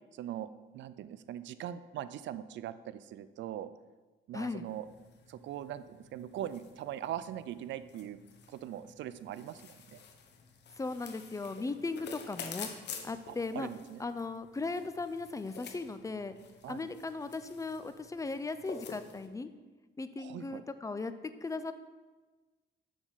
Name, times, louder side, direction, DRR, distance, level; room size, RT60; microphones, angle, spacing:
voice 1, 0.1-3.7 4.3-4.9 5.3-8.2 8.5-10.0 13.3-14.0 16.6-16.9 20.2-20.6, right 11 dB, 70° right, 14 dB, 0.4 m, -41 dB
voice 2, 4.3-4.7 10.8-12.7 13.0-13.7 14.0-16.3 16.7-19.5 20.0-21.1 21.4-21.7, left 3 dB, 15° left, 11 dB, 0.4 m, -37 dB
sound 1, 4.6-19.3, left 5 dB, 60° left, 0.8 m, -50 dB
6.0 x 6.0 x 4.0 m, 1.3 s
cardioid pair, 90°, 20 cm